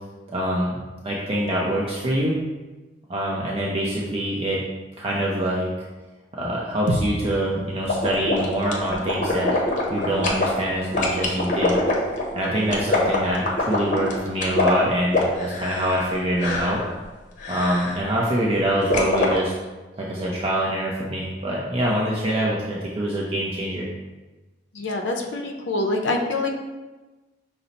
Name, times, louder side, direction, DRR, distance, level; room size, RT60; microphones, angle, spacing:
voice 1, 0.3-0.7 1.0-2.4 3.1-4.6 5.0-5.7 6.3-9.5 9.9-11.8 12.3-16.8 17.5-19.5 20.0-23.9, right 1 dB, 30° right, -4 dB, 0.5 m, -25 dB
sound 1, 6.9-11.2, right 2 dB, 85° right, 0.4 m, -33 dB
sound 2, 7.9-10.5 10.9-16.1 16.4-16.8 17.4-18.0 18.9-19.3, left 3 dB, 45° left, 0.7 m, -24 dB
voice 2, 24.7-26.5, left 2 dB, 85° left, 2 dB, 0.5 m, -25 dB
5.5 x 2.0 x 3.9 m, 1.2 s
head